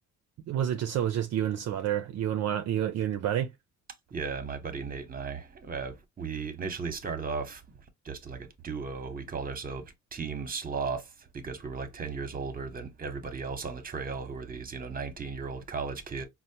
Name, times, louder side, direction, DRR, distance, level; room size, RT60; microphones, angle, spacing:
voice 1, 0.5-3.5, right 10 dB, 60° right, 0.4 m, -29 dB
voice 2, 4.1-7.6 8.0-16.2, right 5 dB, 30° right, 0.8 m, -36 dB
4.2 x 2.1 x 2.7 m
cardioid pair, 90°, 30 cm